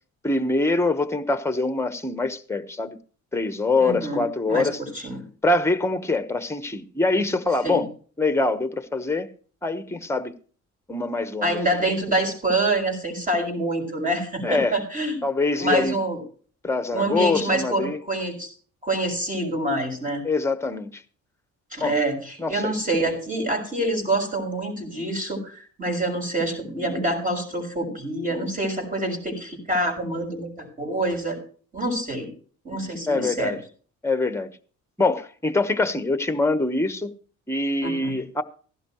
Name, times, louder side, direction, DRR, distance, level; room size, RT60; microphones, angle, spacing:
voice 1, 0.2-3.0 3.3-4.8 5.4-7.9 8.2-9.3 9.6-10.3 10.9-11.6 14.4-14.7 15.2-16.0 16.6-18.0 20.2-21.0 21.8-22.0 22.4-22.7 33.1-33.6 34.0-34.5 35.0-37.1 37.5-38.4, left 3 dB, 10° left, 1.0 m, -24 dB
voice 2, 3.8-4.2 4.5-5.2 7.6-7.8 11.4-15.2 15.6-16.2 16.9-18.5 18.8-20.2 21.7-31.4 31.7-32.3 32.6-33.6 37.8-38.2, right 1 dB, 25° right, 6.0 m, -26 dB
16.0 x 12.0 x 3.0 m
cardioid pair, 90°, 30 cm